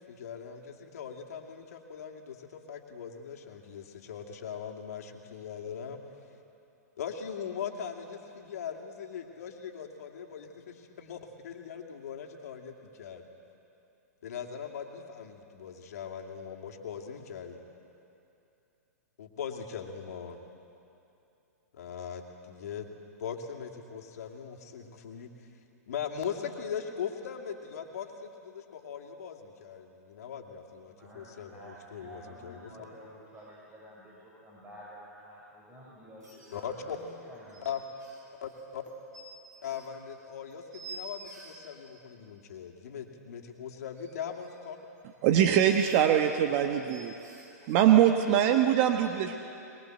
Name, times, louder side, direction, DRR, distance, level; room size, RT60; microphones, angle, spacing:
voice 1, 0.0-6.0 7.0-13.3 14.2-17.6 19.2-20.4 21.7-25.5 25.9-32.7 36.5-37.0 37.6-37.8 38.4-38.8 39.6-44.8, left 7 dB, 65° left, 3 dB, 2.6 m, -40 dB
voice 2, 30.9-31.7 32.0-34.1 34.4-37.6, equal, 20° right, -6 dB, 6.0 m, -50 dB
sound 1, 33.0-33.1 33.3-33.5 36.2-41.6 43.9-48.4, right 2 dB, 80° right, 6.2 m, -50 dB
voice 3, 45.2-47.1 47.7-49.4, right 10 dB, 45° right, 6 dB, 1.2 m, -23 dB
22.5 x 21.5 x 7.9 m, 2.8 s
hypercardioid pair, 120°, 9 cm